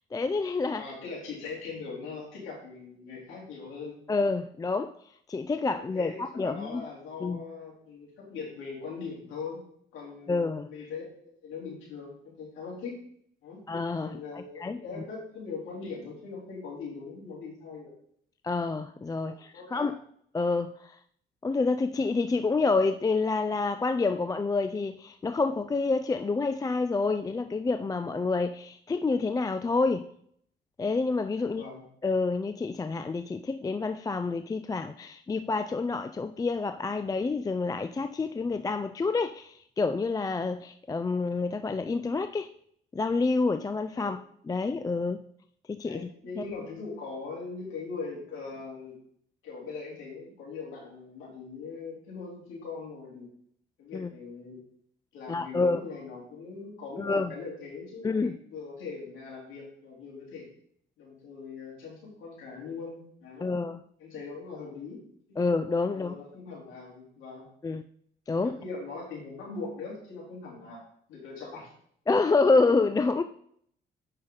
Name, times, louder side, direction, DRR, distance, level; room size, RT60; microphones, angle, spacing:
voice 1, 0.1-0.8 4.1-4.9 5.3-6.8 7.2-7.4 10.3-10.7 13.7-14.2 14.6-14.8 18.4-19.9 20.3-21.0 21.4-30.1 30.8-31.6 32.0-42.5 42.9-44.2 44.5-45.2 45.7-46.1 46.4-46.5 53.9-54.1 55.3-55.8 57.0-57.3 58.0-58.3 63.4-63.8 65.4-66.1 67.6-67.8 68.3-68.5 72.1-73.2, left 3 dB, 20° left, 0.3 m, -28 dB
voice 2, 0.7-4.0 5.7-9.6 9.9-10.3 10.6-11.0 11.4-12.9 13.4-13.6 14.0-17.9 19.2-19.9 31.4-31.8 43.9-44.1 44.9-45.1 45.8-48.9 49.4-53.3 53.8-54.6 55.1-60.5 61.0-63.5 64.0-65.0 65.3-65.4 65.9-67.5 68.4-70.8 71.1-71.7, left 4 dB, 85° left, 3.7 m, -41 dB
8.7 x 5.7 x 3.9 m
cardioid pair, 90°, 20 cm